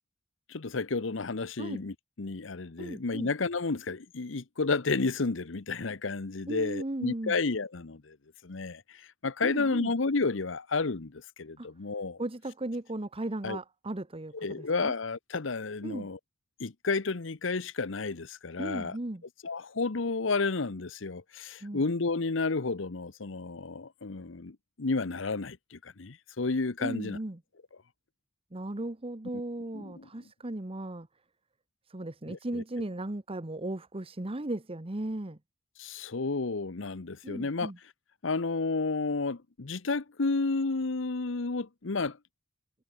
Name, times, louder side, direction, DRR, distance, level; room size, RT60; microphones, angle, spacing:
voice 1, 0.5-8.2 8.4-12.2 13.4-13.6 14.3-16.2 16.6-19.0 19.4-27.2 29.7-30.0 32.3-32.6 35.8-37.7 38.2-42.2, left 3 dB, 70° left, 0.9 m, -31 dB
voice 2, 2.8-3.3 6.5-7.4 9.4-9.9 11.6-11.7 12.2-14.9 15.8-16.1 18.6-19.2 21.6-21.8 26.8-27.4 28.5-31.1 31.9-35.4 37.2-37.8, right 1 dB, 30° right, 1.1 m, -36 dB
head